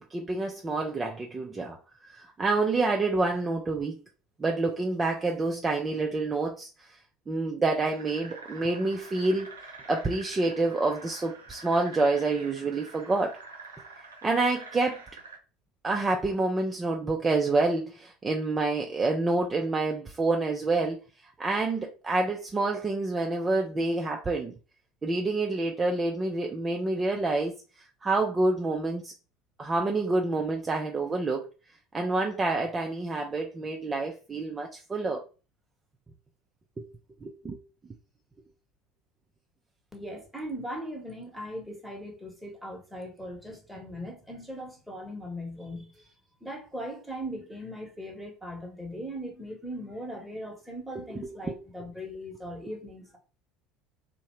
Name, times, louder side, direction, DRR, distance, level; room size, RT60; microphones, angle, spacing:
voice 1, 0.1-1.8 2.1-4.0 4.4-6.9 7.3-9.5 9.9-13.4 14.2-15.0 15.8-21.0 21.4-24.5 25.0-29.1 29.6-31.4 31.9-35.2 36.8-36.9 37.2-37.6 51.5-51.6, right 3 dB, 25° right, 1 dB, 0.4 m, -28 dB
sound 1, 7.9-15.4, right 4 dB, 85° right, 0.7 m, -46 dB
voice 2, 39.9-46.0 46.4-53.2, equal, ahead, 1 dB, 1.0 m, -39 dB
2.7 x 2.1 x 3.0 m, 0.34 s
hypercardioid pair, 70°, 0 cm